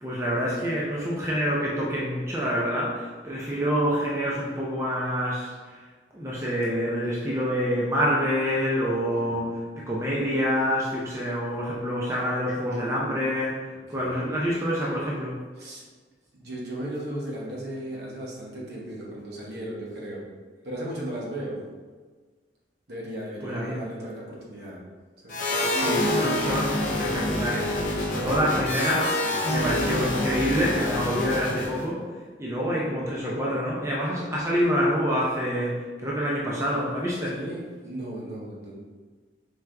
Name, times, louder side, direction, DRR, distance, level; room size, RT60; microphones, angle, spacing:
voice 1, 0.0-5.8 6.1-13.6 13.9-15.4 23.4-23.8 25.7-27.8 28.1-32.0 32.4-37.3, equal, 15° right, -5 dB, 0.5 m, -27 dB
voice 2, 16.3-20.2 20.6-21.6 22.9-24.8 25.2-25.6 29.5-29.8 32.9-33.0 37.3-38.8, right 1 dB, 70° right, -4 dB, 1.0 m, -36 dB
sound 1, 25.3-31.9, left 1 dB, 45° left, 0.6 m, -27 dB
4.5 x 2.5 x 3.3 m, 1.4 s
head